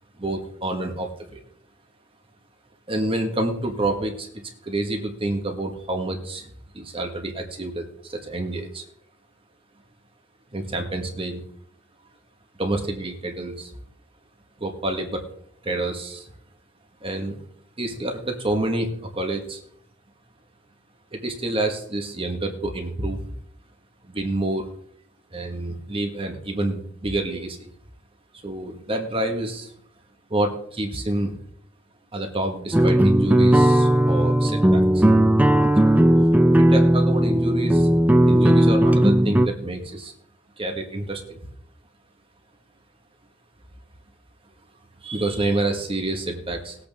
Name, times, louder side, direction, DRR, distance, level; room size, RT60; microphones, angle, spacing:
voice 1, 0.2-1.4 2.9-4.3 4.6-6.5 6.7-7.8 8.1-8.8 10.5-11.4 12.6-13.7 14.6-15.2 15.6-16.2 17.0-17.3 17.8-19.6 21.1-23.2 24.1-24.6 25.3-27.6 28.4-29.7 30.3-31.3 32.1-35.0 35.8-35.9 36.7-37.9 38.3-40.1 40.6-41.4 45.0-46.8, right 2 dB, 30° right, 4 dB, 1.6 m, -28 dB
sound 1, 32.7-39.5, right 1 dB, 10° right, 0.5 m, -17 dB
19.5 x 8.2 x 3.6 m, 0.66 s
head